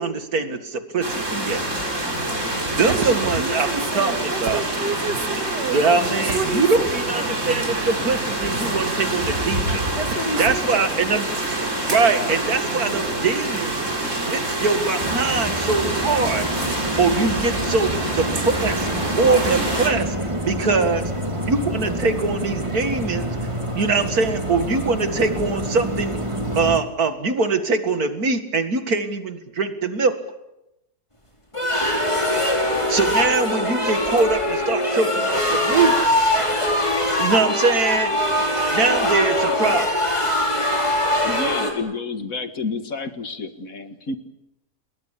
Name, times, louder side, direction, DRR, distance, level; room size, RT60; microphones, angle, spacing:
voice 1, 0.0-1.6 2.8-4.6 5.7-9.8 10.1-11.3 11.9-13.8 14.3-16.5 17.0-18.9 19.2-20.2 20.4-21.0 21.5-23.3 23.8-26.2 26.5-30.1 32.9-36.0 37.2-38.1 38.7-39.9, right 4 dB, 65° right, 8 dB, 2.5 m, -22 dB
sound 1, 1.0-19.9, right 2 dB, 45° right, 5.5 m, -26 dB
voice 2, 2.8-7.5 10.0-11.0, right 3 dB, 90° right, 6 dB, 2.9 m, -30 dB
sound 2, 15.0-26.8, right 1 dB, 15° right, 2.8 m, -28 dB
sound 3, 31.5-41.7, left 1 dB, 15° left, 4.8 m, -22 dB
voice 3, 41.2-44.2, left 4 dB, 55° left, 9 dB, 2.1 m, -29 dB
29.0 x 21.0 x 8.3 m, 0.89 s
omnidirectional pair, 1.8 m